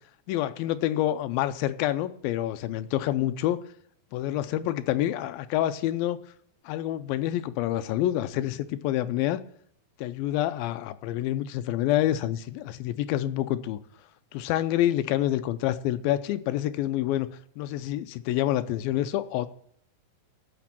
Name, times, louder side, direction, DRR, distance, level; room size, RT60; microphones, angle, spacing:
voice 1, 0.3-3.6 4.1-6.2 6.7-9.4 10.0-13.8 14.3-17.3 17.6-19.5, left 13 dB, 85° left, 11 dB, 2.5 m, -27 dB
15.0 x 6.0 x 7.3 m, 0.67 s
omnidirectional pair, 4.2 m